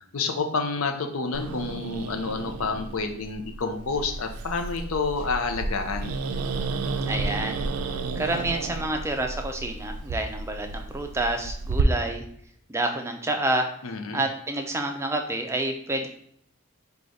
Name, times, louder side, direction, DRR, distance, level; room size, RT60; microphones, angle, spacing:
voice 1, 0.1-6.2 13.8-14.2, left 4 dB, 75° left, 5 dB, 0.6 m, -29 dB
Growling, 1.3-11.8, right 3 dB, 85° right, 0.4 m, -32 dB
voice 2, 7.1-7.7 8.2-12.2 12.7-13.7 14.1-16.1, right 2 dB, 10° right, 4 dB, 0.4 m, -28 dB
4.9 x 2.3 x 3.9 m, 0.67 s
head